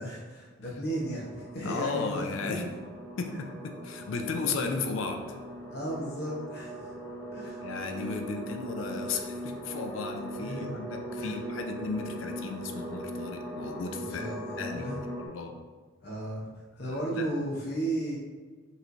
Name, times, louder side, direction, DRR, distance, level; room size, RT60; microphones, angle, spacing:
voice 1, 0.0-2.6 5.7-6.9 7.3-7.6 10.4-10.7 11.2-11.4 14.1-15.0 16.0-16.5 16.8-18.2, right 1 dB, 55° left, -4 dB, 0.9 m, -35 dB
sound 1, 0.9-15.3, right 1 dB, 5° left, 0.8 m, -40 dB
voice 2, 1.6-2.7 3.2-5.4 7.6-15.6 16.8-17.3, left 4 dB, 85° left, 4 dB, 0.5 m, -35 dB
5.4 x 3.1 x 2.6 m, 1.5 s
head